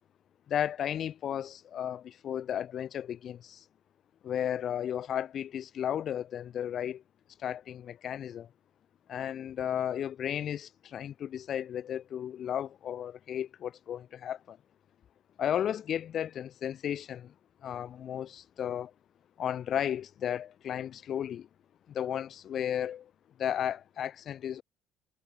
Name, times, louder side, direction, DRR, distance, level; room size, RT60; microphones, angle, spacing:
voice 1, 0.5-3.6 4.2-7.0 7.4-8.5 9.1-14.6 15.4-17.3 17.6-18.9 19.4-21.5 21.9-23.1 23.4-24.6, left 10 dB, 40° left, 2.9 m, -34 dB
cardioid pair, 170°, 0 cm